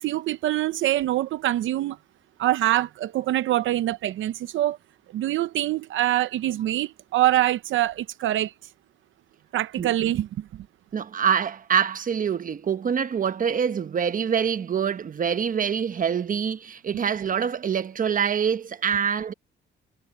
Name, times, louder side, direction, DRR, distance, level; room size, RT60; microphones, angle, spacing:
voice 1, 0.0-2.0 2.4-4.8 5.1-8.5 9.5-10.7, right 14 dB, 75° right, 0.8 m, -24 dB
voice 2, 10.9-19.3, right 7 dB, 45° right, 1.1 m, -25 dB
cardioid pair, 90°, 20 cm